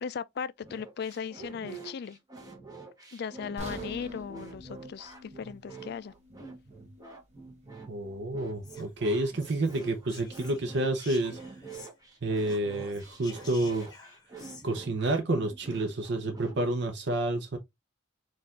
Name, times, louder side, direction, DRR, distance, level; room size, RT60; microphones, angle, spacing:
voice 1, 0.0-2.2 3.1-6.1, left 6 dB, 55° left, 0.3 m, -37 dB
sound 1, 0.6-16.6, right 4 dB, 20° right, 1.0 m, -47 dB
sound 2, 3.6-7.6 8.0-8.1 8.7-8.8, left 1 dB, 35° right, 1.3 m, -45 dB
voice 2, 7.9-11.4 12.2-13.9 14.6-17.6, right 2 dB, 60° right, 0.7 m, -29 dB
Whispering, 8.6-12.2 12.4-14.7, left 4 dB, 20° left, 1.2 m, -51 dB
4.5 x 2.4 x 3.6 m
head